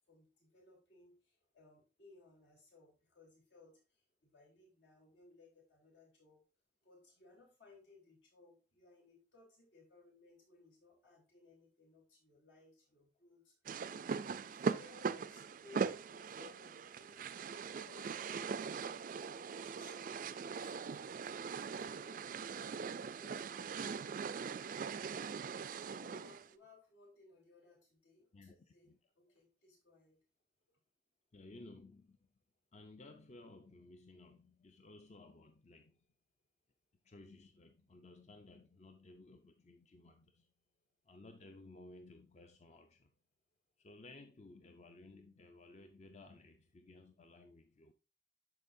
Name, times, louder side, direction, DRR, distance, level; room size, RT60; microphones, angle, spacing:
voice 1, 0.1-6.4 6.8-17.4 17.8-22.8 23.1-24.0 25.8-30.2 30.7-30.8, left 3 dB, 80° left, 3.5 m, -63 dB
sound 1, 13.7-26.5, right 5 dB, 45° right, 0.3 m, -41 dB
voice 2, 28.3-29.0 31.3-32.2 32.7-36.0 37.0-40.5 41.0-43.1 43.8-47.9, left 2 dB, 35° left, 0.5 m, -57 dB
12.0 x 4.5 x 2.6 m
head